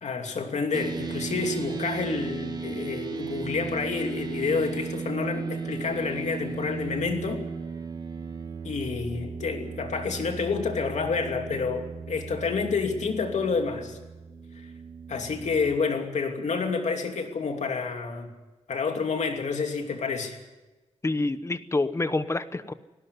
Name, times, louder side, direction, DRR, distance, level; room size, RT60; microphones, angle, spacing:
voice 1, 0.0-7.5 8.6-14.0 15.1-18.3 18.7-20.4, left 4 dB, 75° left, 4 dB, 2.8 m, -29 dB
sound 1, 0.7-15.8, right 5 dB, 35° right, 1.3 m, -36 dB
voice 2, 21.0-22.7, left 2 dB, 25° left, 13 dB, 0.9 m, -27 dB
19.0 x 17.5 x 9.7 m, 1.1 s
wide cardioid pair, 150°, 12 cm